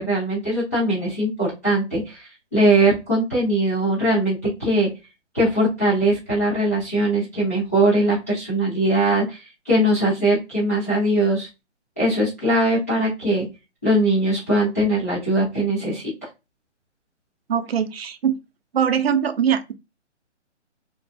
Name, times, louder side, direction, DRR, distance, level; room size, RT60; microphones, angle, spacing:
voice 1, 0.0-4.9 5.3-11.5 12.0-13.5 13.8-16.0, right 1 dB, 15° left, 0.4 m, -21 dB
voice 2, 17.5-18.4 18.7-19.7, right 8 dB, 55° right, 0.5 m, -21 dB
2.6 x 2.2 x 2.3 m
figure-of-eight pair, 145°, 36 cm